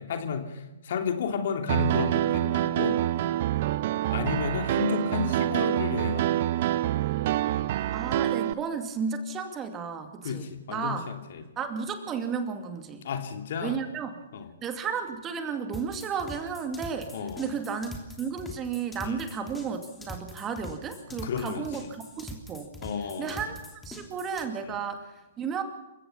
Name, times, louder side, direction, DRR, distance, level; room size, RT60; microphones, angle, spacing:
voice 1, 0.0-3.0 4.1-6.5 10.2-11.4 13.0-13.8 14.3-14.5 17.1-17.5 19.0-19.2 21.2-21.7 22.8-23.4, left 6 dB, 50° left, 5 dB, 3.0 m, -32 dB
Piano, 1.7-8.5, right 13 dB, 45° right, 0.7 m, -26 dB
voice 2, 7.9-11.1 11.6-13.0 13.6-14.1 14.6-22.7 23.2-25.6, right 6 dB, 20° right, 7 dB, 2.4 m, -33 dB
sound 1, 15.7-24.5, left 1 dB, 5° left, 3.1 m, -43 dB
28.5 x 16.5 x 5.8 m, 1.0 s
figure-of-eight pair, 120°, 0 cm